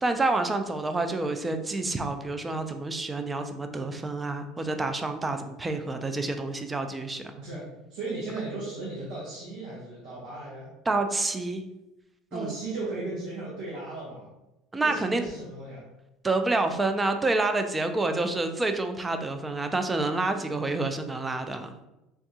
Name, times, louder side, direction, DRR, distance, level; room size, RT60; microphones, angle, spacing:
voice 1, 0.0-7.2 10.9-11.6 12.3-12.5 14.7-15.2 16.2-21.7, right 2 dB, 15° right, 7 dB, 0.3 m, -28 dB
voice 2, 7.4-10.7 12.3-14.3 14.8-15.9, right 2 dB, 85° right, -6 dB, 0.9 m, -36 dB
3.5 x 2.3 x 2.7 m, 0.96 s
supercardioid pair, 110°, 0 cm